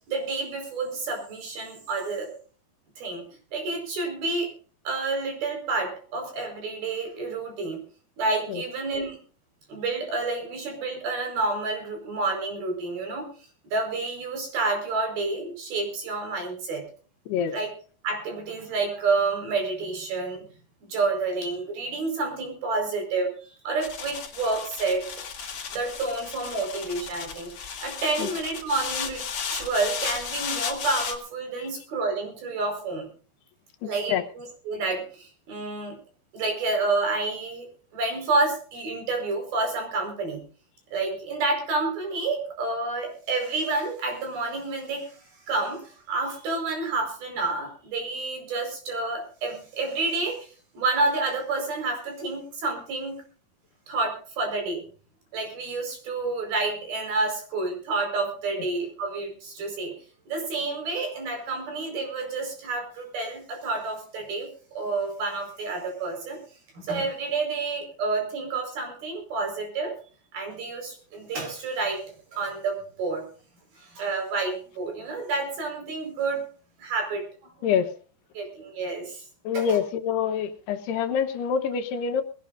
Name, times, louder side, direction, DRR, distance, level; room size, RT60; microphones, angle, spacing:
voice 1, 0.1-2.3 3.0-3.3 3.5-4.5 4.8-7.8 8.2-9.2 9.7-13.3 13.6-16.8 17.5-17.7 18.0-20.5 20.8-25.1 25.4-29.2 29.5-33.1 33.9-36.0 36.3-37.7 37.9-40.4 40.9-45.2 45.5-53.2 53.9-54.8 55.3-59.9 60.3-66.4 66.7-69.9 70.3-72.0 72.3-73.2 73.7-76.4 76.8-77.8 78.3-79.2 79.5-79.8, right 3 dB, 60° right, 4 dB, 6.7 m, -29 dB
sound 1, 23.8-31.2, left 6 dB, 45° left, 2.1 m, -34 dB
voice 2, 33.8-34.2 77.6-77.9 79.5-82.2, left 7 dB, 75° left, 8 dB, 3.0 m, -26 dB
21.0 x 17.0 x 2.6 m, 0.40 s
omnidirectional pair, 4.9 m